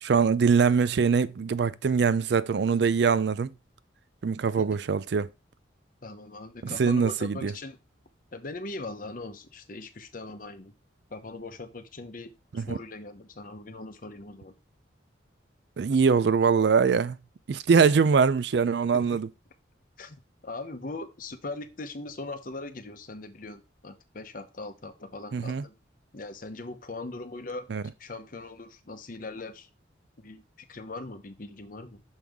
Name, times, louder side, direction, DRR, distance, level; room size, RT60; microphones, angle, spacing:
voice 1, 0.0-3.5 4.2-5.3 6.6-7.5 12.5-12.8 15.8-17.2 17.5-19.3 25.3-25.6 27.7-27.8, right 5 dB, 60° right, 0.4 m, -23 dB
voice 2, 6.0-7.8 8.3-10.7 11.1-14.5 18.9-19.2 20.0-25.7 26.1-27.7 28.0-29.7 30.2-32.0, left 2 dB, 45° left, 0.8 m, -40 dB
6.3 x 5.5 x 3.5 m
head